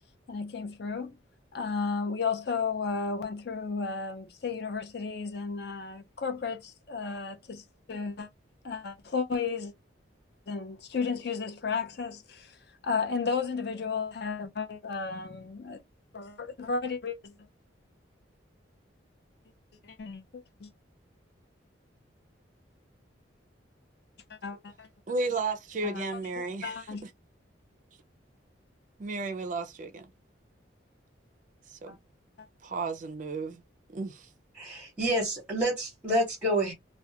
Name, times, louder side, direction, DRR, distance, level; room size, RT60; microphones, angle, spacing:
voice 1, 0.3-1.2 1.5-8.3 8.6-9.7 10.5-12.6 12.8-15.8 16.1-17.3 19.8-20.7 24.3-24.9 25.8-26.0 26.6-27.0 31.9-32.0 32.4-32.5, left 5 dB, 55° left, 0.6 m, -33 dB
voice 2, 25.1-27.1 29.0-30.1 31.7-32.0 32.6-33.6 33.9-34.3, right 3 dB, 40° right, 0.4 m, -33 dB
voice 3, 34.6-36.7, right 1 dB, 5° right, 0.9 m, -28 dB
2.3 x 2.1 x 2.7 m
head